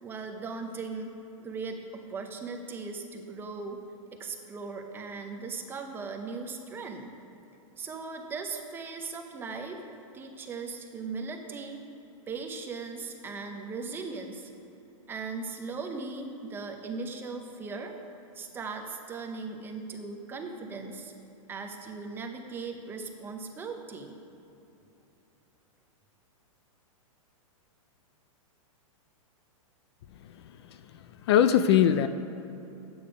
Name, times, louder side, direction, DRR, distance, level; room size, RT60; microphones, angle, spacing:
voice 1, 0.0-3.8 4.1-7.1 7.8-9.8 10.1-11.8 12.3-14.5 15.1-18.0 18.3-21.1 21.5-24.1, right 4 dB, 10° right, 4 dB, 0.6 m, -38 dB
voice 2, 30.2-32.1, left 9 dB, 50° left, 11 dB, 0.4 m, -24 dB
10.0 x 8.7 x 5.0 m, 2.9 s
hypercardioid pair, 155°, 18 cm